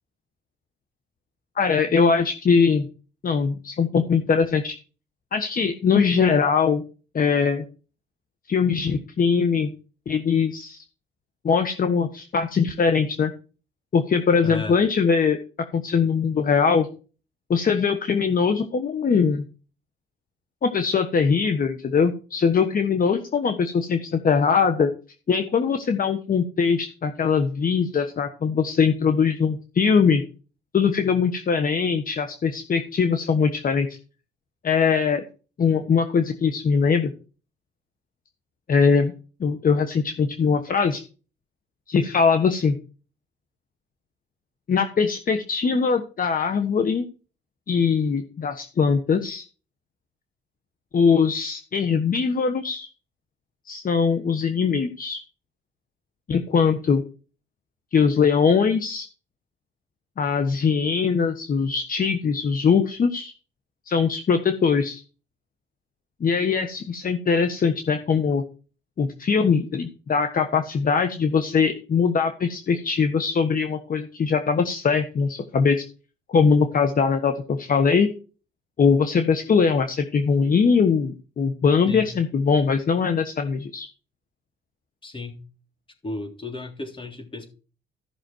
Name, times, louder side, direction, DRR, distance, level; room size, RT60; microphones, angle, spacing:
voice 1, 1.6-2.9 3.2-4.7 5.3-6.8 7.1-7.6 8.5-9.7 10.1-10.8 11.4-13.3 13.9-15.4 15.7-16.9 17.5-19.5 20.6-24.9 25.3-30.2 30.7-34.0 34.6-35.2 35.6-37.1 38.7-39.1 39.4-41.0 41.9-42.7 44.7-47.0 47.7-49.4 50.9-52.9 53.7-55.2 56.3-57.0 57.9-59.1 60.2-63.3 63.9-65.0 66.2-68.4 69.0-75.8 76.3-78.1 78.8-83.9, left 5 dB, 45° left, 7 dB, 1.3 m, -21 dB
voice 2, 14.4-14.8 81.9-82.2 85.0-85.4 86.0-87.5, left 2 dB, 25° left, 4 dB, 3.3 m, -34 dB
14.5 x 6.3 x 4.5 m, 0.35 s
cardioid pair, 90°, 20 cm